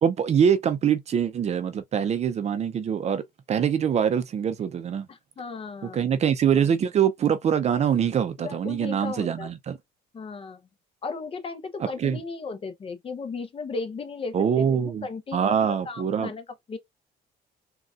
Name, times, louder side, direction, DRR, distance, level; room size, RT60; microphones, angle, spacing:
voice 1, 0.0-3.2 3.5-5.1 5.9-9.8 11.8-12.2 14.3-15.1 15.3-16.3, right 8 dB, 40° right, 0.5 m, -24 dB
voice 2, 5.1-6.2 8.4-9.5 10.1-10.7 11.0-14.7 15.0-16.8, left 4 dB, 35° left, 0.7 m, -36 dB
3.9 x 2.3 x 2.4 m
cardioid pair, 110°, 17 cm